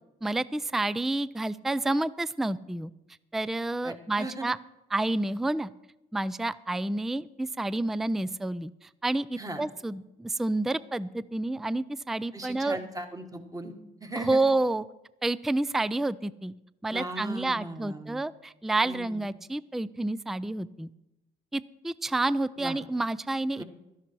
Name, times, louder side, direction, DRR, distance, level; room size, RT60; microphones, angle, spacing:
voice 1, 0.2-2.9 3.3-4.6 4.9-5.7 6.1-12.8 14.2-14.9 15.2-16.5 16.8-20.9 21.5-23.6, right 2 dB, ahead, 18 dB, 0.3 m, -29 dB
voice 2, 3.8-4.5 9.4-9.6 12.3-14.4 16.9-18.2 18.8-19.2 22.6-22.8 23.6-23.7, right 1 dB, 20° right, 5 dB, 1.8 m, -38 dB
12.5 x 11.0 x 4.7 m, 0.93 s
cardioid pair, 90°, 20 cm